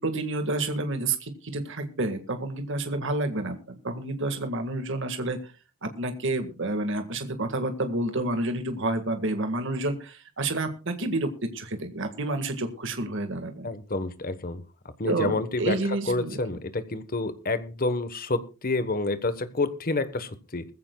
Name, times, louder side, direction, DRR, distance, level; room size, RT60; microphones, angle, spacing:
voice 1, 0.0-5.5 5.8-13.7 15.1-16.4, right 2 dB, 55° right, 8 dB, 1.8 m, -29 dB
voice 2, 13.6-14.6 15.0-15.8 16.1-20.7, left 2 dB, 40° left, 12 dB, 1.2 m, -28 dB
20.5 x 15.0 x 2.3 m, 0.32 s
head